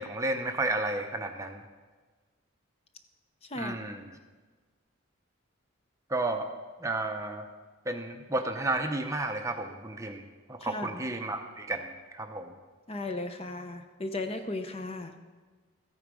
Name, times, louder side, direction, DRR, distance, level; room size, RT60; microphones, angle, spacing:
voice 1, 0.0-1.6 3.6-4.2 6.1-6.5 6.8-7.5 7.9-10.2 10.5-12.5, right 2 dB, 15° right, 5 dB, 0.6 m, -32 dB
voice 2, 12.9-15.1, left 2 dB, 30° left, 7 dB, 0.6 m, -35 dB
14.0 x 8.9 x 4.8 m, 1.4 s
head